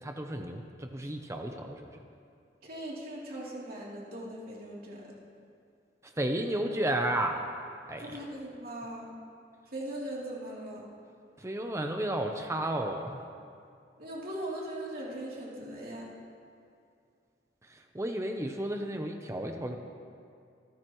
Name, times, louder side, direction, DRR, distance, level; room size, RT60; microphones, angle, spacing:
voice 1, 0.0-2.0 6.0-7.5 7.9-8.2 11.4-13.2 17.6-19.8, right 1 dB, 15° right, 4 dB, 0.7 m, -33 dB
voice 2, 2.6-5.1 8.0-9.0 9.7-10.8 14.0-16.1, right 1 dB, 55° right, -5 dB, 3.1 m, -39 dB
24.5 x 13.5 x 3.1 m, 2.4 s
head